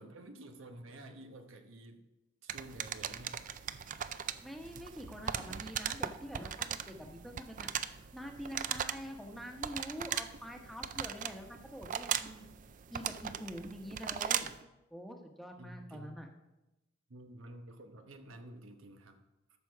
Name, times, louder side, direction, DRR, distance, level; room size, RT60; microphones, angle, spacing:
voice 1, 0.0-2.1 2.4-3.5 15.6-16.2 17.1-19.2, right 1 dB, 85° right, 6 dB, 1.0 m, -50 dB
sound 1, 2.5-14.6, right 9 dB, 40° right, 0.4 m, -39 dB
voice 2, 4.4-7.7 8.1-12.5 12.9-14.5 14.9-16.3, equal, ahead, 2 dB, 1.0 m, -46 dB
13.5 x 6.1 x 4.6 m, 0.98 s
head